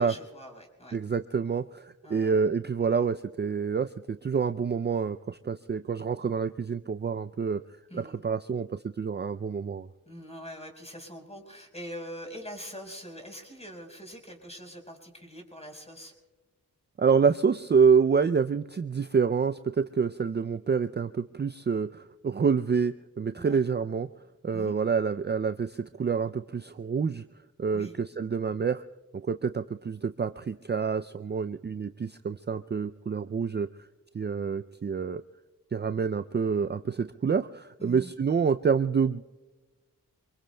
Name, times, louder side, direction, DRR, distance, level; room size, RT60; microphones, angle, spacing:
voice 1, 0.0-1.0 2.0-2.3 7.9-8.1 10.1-16.1 23.4-23.6 24.5-24.8 27.7-27.9 37.8-38.1, equal, 20° left, 2 dB, 4.6 m, -43 dB
voice 2, 0.9-7.6 7.9-9.9 17.0-24.1 24.4-27.2 27.6-28.8 29.1-33.7 34.1-35.2 35.7-39.2, right 6 dB, 30° right, 11 dB, 0.4 m, -27 dB
26.5 x 22.0 x 2.3 m, 1.2 s
cardioid pair, 45°, 35 cm